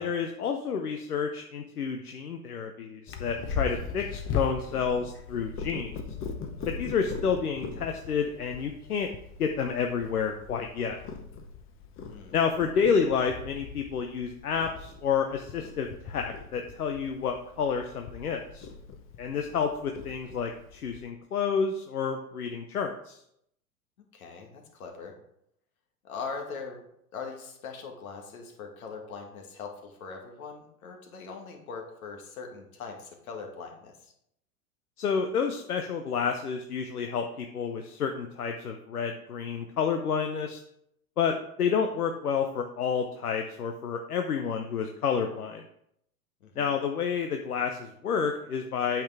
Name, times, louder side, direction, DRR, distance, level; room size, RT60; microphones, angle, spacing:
voice 1, 0.0-6.0 6.7-9.1 9.4-11.0 12.3-18.7 19.2-23.2 35.0-40.6 41.2-45.6 46.6-49.0, left 6 dB, 90° left, 4 dB, 0.8 m, -29 dB
Purr, 3.1-21.0, left 5 dB, 30° left, 0.9 m, -39 dB
voice 2, 12.0-12.3 24.1-25.1 26.0-26.8 27.1-34.1 46.4-46.7, left 5 dB, 70° left, 2 dB, 2.0 m, -41 dB
8.5 x 5.9 x 3.4 m, 0.74 s
hypercardioid pair, 100°, 44 cm